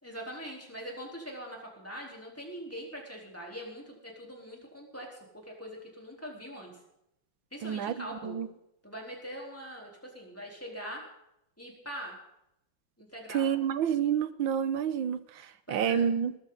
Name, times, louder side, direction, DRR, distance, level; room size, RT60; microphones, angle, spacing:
voice 1, 0.0-6.7 7.5-8.4 8.8-11.0 11.6-12.2 13.0-13.5 15.7-16.1, equal, 5° left, -2 dB, 4.0 m, -42 dB
voice 2, 7.6-7.9 8.2-8.5 13.3-15.2 15.7-16.3, right 8 dB, 75° right, 13 dB, 1.7 m, -28 dB
20.5 x 13.5 x 4.0 m, 0.82 s
omnidirectional pair, 2.2 m